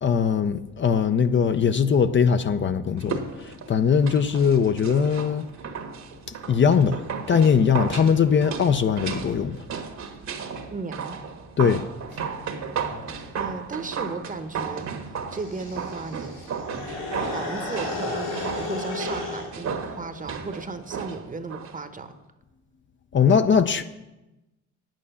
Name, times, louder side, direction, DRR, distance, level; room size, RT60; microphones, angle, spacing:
voice 1, 0.0-5.5 6.5-7.0 7.3-9.7 11.6-11.8 12.1-12.2 23.1-23.8, left 6 dB, 40° left, 0.6 m, -21 dB
sound 1, 3.0-21.8 22.1-22.2, right 6 dB, 65° right, 1.5 m, -35 dB
voice 2, 10.7-11.2 13.4-16.4 17.3-22.1, right 3 dB, 25° right, 1.0 m, -35 dB
sound 2, 15.3-19.5, left 2 dB, 90° left, 4.2 m, -33 dB
9.0 x 8.4 x 7.0 m
cardioid pair, 90°, 30 cm